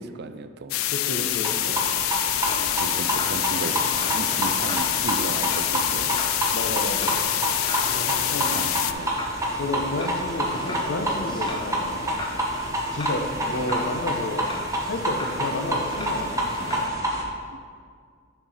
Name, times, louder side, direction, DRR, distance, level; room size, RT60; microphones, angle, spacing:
voice 1, 0.0-0.7 2.8-3.8 4.1-6.2 8.1-9.1 17.5-17.6, right 3 dB, 55° right, 10 dB, 0.4 m, -35 dB
sound 1, 0.7-8.9, left 13 dB, 80° left, 0.3 m, -26 dB
voice 2, 0.9-1.9 6.5-7.2 7.9-8.6 9.5-12.1 12.9-14.5 14.9-16.8, left 2 dB, 65° left, 5 dB, 0.8 m, -31 dB
sound 2, 1.3-17.2, equal, 15° right, 1.0 m, -28 dB
sound 3, 2.5-16.9, left 2 dB, 25° left, 0.6 m, -38 dB
9.9 x 4.7 x 4.1 m, 2.1 s
head